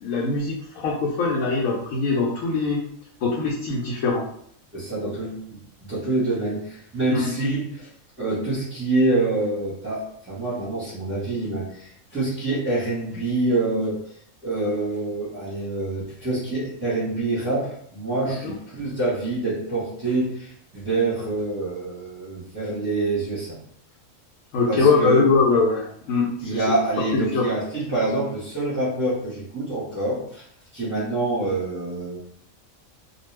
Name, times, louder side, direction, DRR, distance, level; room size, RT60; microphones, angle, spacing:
voice 1, 0.0-2.8 3.2-4.3 7.1-7.3 18.2-18.5 24.5-26.6 27.1-27.5, left 4 dB, 80° left, -3 dB, 1.0 m, -22 dB
voice 2, 4.7-5.6 5.9-7.9 8.2-14.0 14.4-23.6 24.6-25.2 26.2-30.4 30.7-32.2, right 2 dB, 15° right, -10 dB, 0.8 m, -26 dB
2.4 x 2.2 x 3.2 m, 0.66 s
omnidirectional pair, 1.4 m